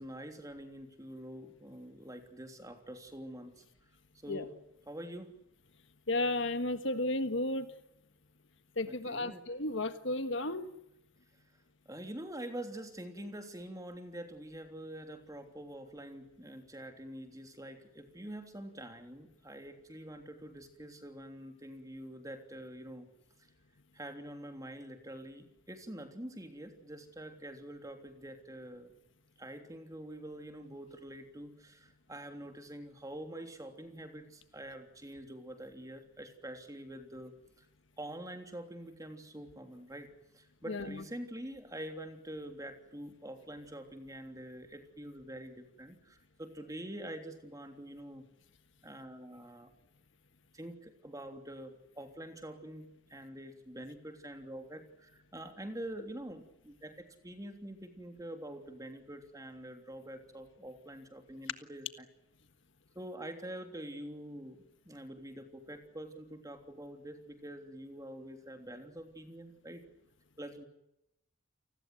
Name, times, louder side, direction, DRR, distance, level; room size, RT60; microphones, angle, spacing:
voice 1, 0.0-3.6 4.2-4.5 4.9-5.4 8.9-9.4 11.9-23.1 23.9-28.9 29.4-37.7 38.0-40.1 40.3-48.3 48.8-49.7 50.5-62.1 62.9-69.9 70.4-70.7, right 1 dB, 15° right, 5 dB, 3.2 m, -46 dB
voice 2, 6.1-7.7 8.8-10.7 40.7-41.0, left 2 dB, 60° left, 10 dB, 1.6 m, -33 dB
30.0 x 20.0 x 7.9 m, 0.86 s
head